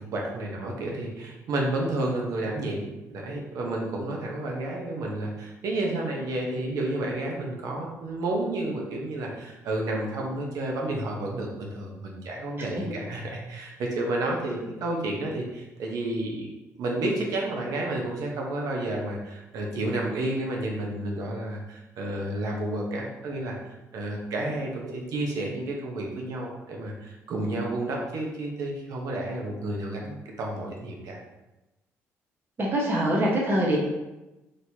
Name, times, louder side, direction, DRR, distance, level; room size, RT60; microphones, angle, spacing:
voice 1, 0.0-31.2, right 2 dB, 70° right, -1 dB, 0.9 m, -31 dB
voice 2, 32.6-33.8, right 1 dB, 35° right, -3 dB, 1.0 m, -24 dB
4.3 x 3.2 x 2.8 m, 1.0 s
cardioid pair, 80°, 6 cm